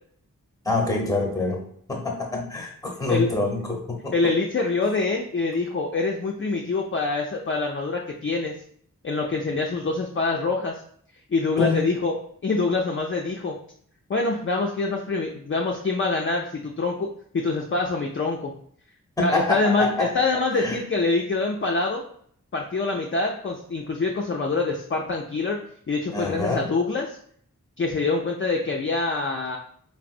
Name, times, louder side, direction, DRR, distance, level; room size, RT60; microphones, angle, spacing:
voice 1, 0.6-1.6 1.9-4.1 11.6-11.9 19.2-20.1 20.5-20.8 26.1-26.7, left 2 dB, 10° left, 0 dB, 0.9 m, -26 dB
voice 2, 4.1-8.5 9.0-10.8 11.3-12.1 12.4-13.6 14.1-18.5 19.2-22.0 22.5-27.2 27.8-29.6, left 3 dB, 40° left, 0 dB, 0.4 m, -25 dB
3.7 x 2.0 x 2.5 m, 0.62 s
wide cardioid pair, 45°, 34 cm